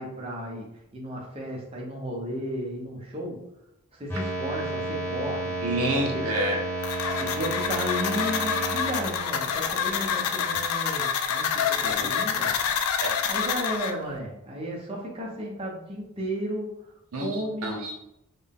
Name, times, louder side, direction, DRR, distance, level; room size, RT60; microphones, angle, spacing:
voice 1, 0.0-3.4 3.9-5.6 6.1-6.2 7.0-12.6 13.3-17.8, equal, 25° right, -2 dB, 0.6 m, -34 dB
sound 1, 4.1-10.6, right 2 dB, 10° left, 1.1 m, -32 dB
voice 2, 5.6-6.6 11.8-12.1 13.0-13.2 17.1-18.0, right 1 dB, 80° right, 1 dB, 0.7 m, -28 dB
sound 2, 6.8-13.9, left 7 dB, 80° left, 0.4 m, -27 dB
4.0 x 2.1 x 3.5 m, 0.84 s
head